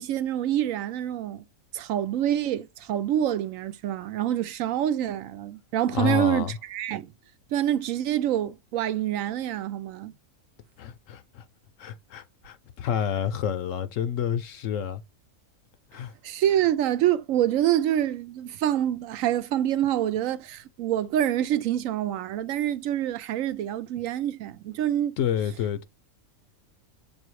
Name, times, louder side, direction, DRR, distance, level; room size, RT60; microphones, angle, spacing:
voice 1, 0.0-1.4 1.7-7.1 7.5-10.1 16.2-25.2, right 11 dB, 70° right, 0.9 m, -26 dB
voice 2, 5.9-6.5 10.8-11.4 11.8-15.0 15.9-16.1 25.2-25.9, left 8 dB, 70° left, 0.9 m, -29 dB
7.5 x 2.7 x 4.6 m
omnidirectional pair, 1.5 m